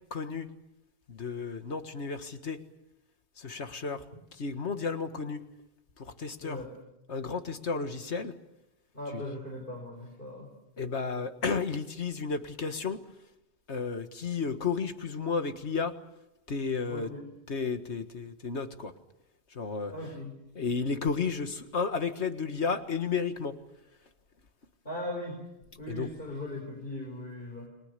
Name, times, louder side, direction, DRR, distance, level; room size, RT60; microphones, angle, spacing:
voice 1, 0.1-0.5 1.1-2.6 3.4-4.0 4.4-5.4 6.0-6.6 7.1-8.3 9.1-9.2 10.8-13.0 13.7-15.9 16.5-17.1 17.5-18.9 19.5-19.9 20.6-23.5 25.9-26.1, left 5 dB, 85° left, 8 dB, 2.0 m, -32 dB
voice 2, 6.4-6.7 8.9-10.5 16.9-17.3 19.9-20.4 24.9-25.4 25.8-27.7, left 1 dB, 55° left, 0 dB, 5.4 m, -39 dB
30.0 x 22.5 x 6.8 m, 0.90 s
omnidirectional pair, 1.1 m